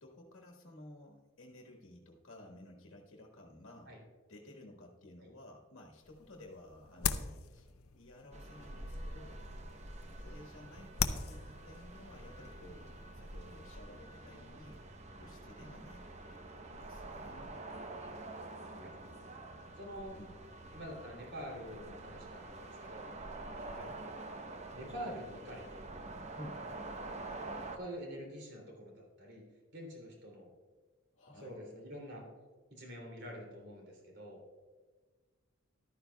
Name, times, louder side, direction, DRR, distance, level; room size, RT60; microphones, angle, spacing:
voice 1, 0.0-3.9 4.3-9.4 10.1-14.8 15.2-16.0 16.3-17.5 20.1-20.4 23.6-24.0 26.3-26.7 31.1-31.6, left 1 dB, 65° left, 0 dB, 1.4 m, -54 dB
sound 1, 6.0-13.7, left 7 dB, 90° left, 0.6 m, -42 dB
sound 2, 8.3-27.8, right 2 dB, 30° right, 0.8 m, -47 dB
voice 2, 18.8-19.1 19.8-20.2 20.7-23.0 24.7-25.8 27.7-29.4 29.7-30.5 31.4-32.2 32.7-34.4, equal, 55° right, -1 dB, 3.0 m, -46 dB
14.0 x 12.0 x 2.3 m, 1.4 s
head